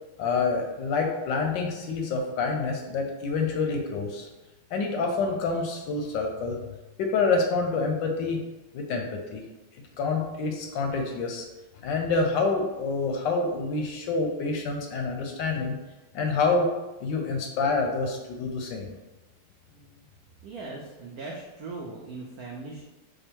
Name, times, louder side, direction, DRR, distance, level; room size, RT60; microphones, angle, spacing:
voice 1, 0.2-4.3 4.7-6.6 7.0-8.4 8.7-9.4 10.0-11.4 11.8-15.8 16.1-16.7 17.0-18.9, left 4 dB, 75° left, 2 dB, 1.1 m, -27 dB
voice 2, 19.7-20.0 20.4-22.9, right 3 dB, 85° right, -2 dB, 0.8 m, -39 dB
5.1 x 2.2 x 4.4 m, 1.1 s
omnidirectional pair, 2.3 m